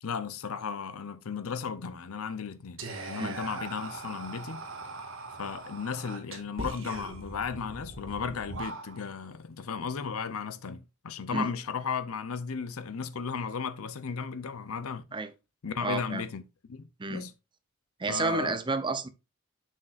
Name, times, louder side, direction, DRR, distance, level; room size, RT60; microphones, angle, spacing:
voice 1, 0.0-2.8 3.1-4.6 5.4-15.0 15.6-16.4 16.7-17.3 18.1-18.6, left 6 dB, 85° left, 0.6 m, -35 dB
Whispering, 2.8-9.2, right 2 dB, 65° right, 1.7 m, -41 dB
voice 2, 15.8-16.2 17.0-17.2 18.0-19.1, right 3 dB, 20° right, 0.6 m, -30 dB
7.4 x 6.5 x 2.5 m
head